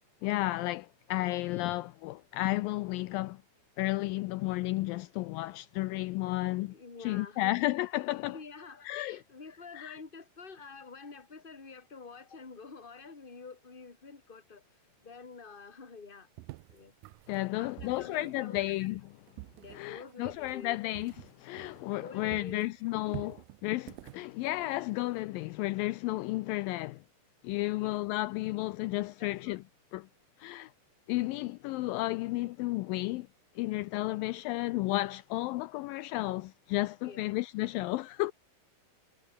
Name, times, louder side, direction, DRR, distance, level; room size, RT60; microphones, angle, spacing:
voice 1, 0.2-3.4 3.8-6.7 7.0-8.4 8.9-9.2 9.7-10.0 17.3-19.0 19.7-23.4 23.6-27.0 27.4-29.6 29.9-30.1 30.4-30.7 31.1-33.3 33.6-38.3, left 18 dB, 80° left, 2.2 m, -33 dB
voice 2, 6.7-7.8 8.2-16.3 16.7-16.9 17.6-18.9 19.6-20.8 22.0-23.4 27.8-28.0 29.2-29.6 34.1-34.2 37.0-37.2, left 4 dB, 15° left, 2.5 m, -49 dB
sound 1, 16.4-22.0 22.3-25.2, right 19 dB, 80° right, 1.9 m, -49 dB
omnidirectional pair, 4.3 m